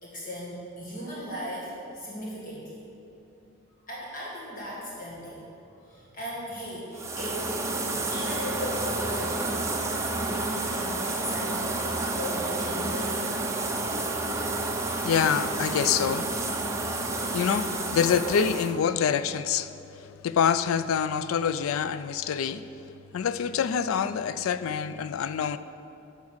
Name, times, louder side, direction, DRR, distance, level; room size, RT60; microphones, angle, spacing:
voice 1, 0.0-2.8 3.9-7.5 8.1-9.8 10.1-13.2, equal, 40° left, 1.6 m, -37 dB
sound 1, 6.9-18.7, right 2 dB, 15° right, 0.6 m, -30 dB
voice 2, 14.7-16.3 16.6-17.0 17.3-19.8 20.0-25.6, left 7 dB, 85° left, 0.3 m, -26 dB
8.5 x 5.3 x 6.4 m
head